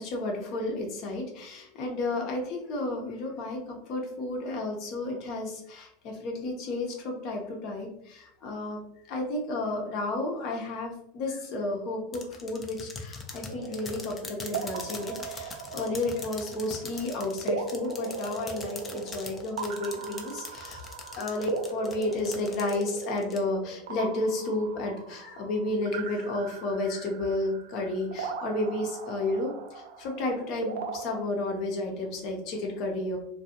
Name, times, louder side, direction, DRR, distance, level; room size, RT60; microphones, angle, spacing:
voice 1, 0.0-8.8 9.1-20.9 21.2-33.2, left 2 dB, 55° left, 1 dB, 0.8 m, -32 dB
sound 1, 12.1-23.4, left 4 dB, 25° left, 0.5 m, -42 dB
sound 2, 13.5-31.2, right 4 dB, 75° right, 0.3 m, -39 dB
2.4 x 2.3 x 2.8 m, 0.77 s
hypercardioid pair, 90°, 0 cm